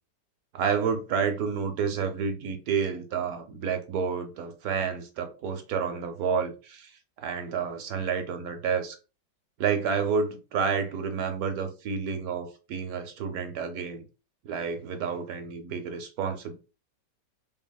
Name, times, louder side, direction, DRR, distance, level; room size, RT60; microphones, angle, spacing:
voice 1, 0.5-6.9 7.2-9.0 9.6-14.0 14.4-16.5, right 6 dB, 70° right, 0.9 m, -30 dB
2.7 x 2.7 x 2.2 m
omnidirectional pair, 1.9 m